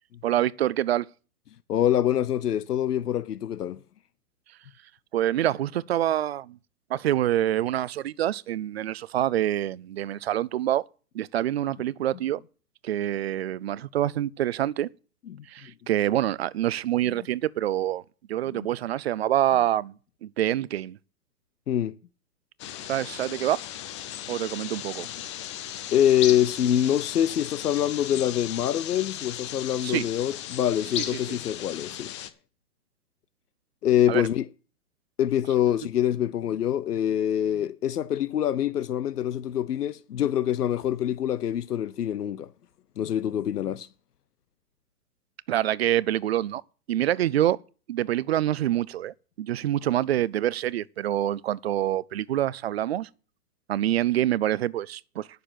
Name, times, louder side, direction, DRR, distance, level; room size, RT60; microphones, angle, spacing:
voice 1, 0.2-1.1 5.1-6.6 6.9-10.8 11.1-12.4 12.8-14.9 15.5-18.0 18.3-19.9 20.2-21.0 22.9-23.6 24.3-25.1 29.8-30.1 31.0-31.1 34.1-34.2 45.5-46.6 46.9-47.6 47.9-53.1 53.7-55.3, right 12 dB, 45° right, 0.5 m, -26 dB
voice 2, 1.7-3.8 15.3-15.4 21.7-21.9 25.9-32.1 33.8-34.5 35.2-42.5 43.0-43.9, left 11 dB, 85° left, 0.8 m, -25 dB
sound 1, 22.6-32.3, left 11 dB, 20° left, 0.5 m, -36 dB
10.0 x 6.6 x 7.4 m
hypercardioid pair, 135°, 45 cm